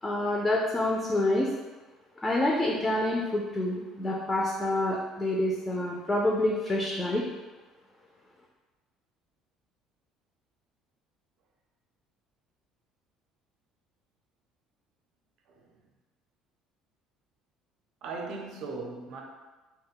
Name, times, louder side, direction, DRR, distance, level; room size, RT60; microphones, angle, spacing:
voice 1, 0.0-1.5 2.2-7.2, left 1 dB, 15° left, -3 dB, 0.3 m, -27 dB
voice 2, 18.0-19.2, right 3 dB, 60° right, 1 dB, 0.5 m, -38 dB
2.2 x 2.1 x 3.6 m, 1.2 s
cardioid pair, 145°, 0 cm